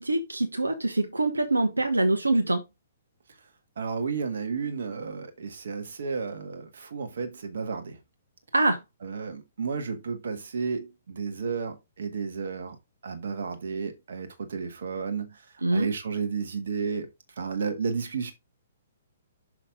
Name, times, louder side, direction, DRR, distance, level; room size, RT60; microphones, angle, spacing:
voice 1, 0.0-2.6 8.5-8.8 15.6-15.9, right 2 dB, 80° right, 1.1 m, -24 dB
voice 2, 3.8-8.0 9.0-12.8 13.0-15.4 15.7-17.1 17.4-18.3, right 5 dB, 60° right, 1.5 m, -32 dB
6.2 x 5.8 x 3.7 m
figure-of-eight pair, 120°, 0 cm